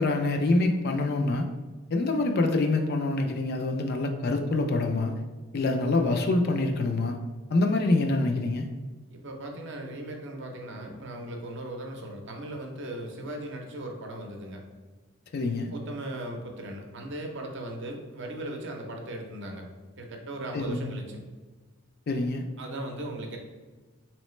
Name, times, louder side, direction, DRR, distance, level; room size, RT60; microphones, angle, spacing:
voice 1, 0.0-1.5 1.9-5.1 5.5-7.2 7.5-8.7 15.3-15.7 20.5-20.8 22.1-22.4, left 2 dB, 45° left, 4 dB, 0.3 m, -25 dB
voice 2, 9.1-14.6 15.7-19.6 20.0-21.2 22.6-23.4, right 1 dB, 50° right, 2 dB, 0.6 m, -38 dB
3.9 x 3.1 x 3.1 m, 1.3 s
head